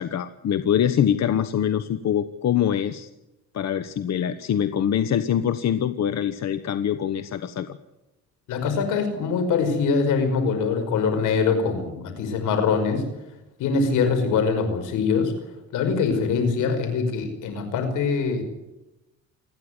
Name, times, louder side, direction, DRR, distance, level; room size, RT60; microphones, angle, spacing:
voice 1, 0.0-3.1 3.5-7.8, left 9 dB, 60° left, 11 dB, 1.2 m, -24 dB
voice 2, 8.5-13.0 13.6-15.3 15.7-18.4, left 5 dB, 90° left, 7 dB, 5.4 m, -23 dB
27.5 x 10.5 x 9.8 m, 0.94 s
cardioid pair, 90°, 30 cm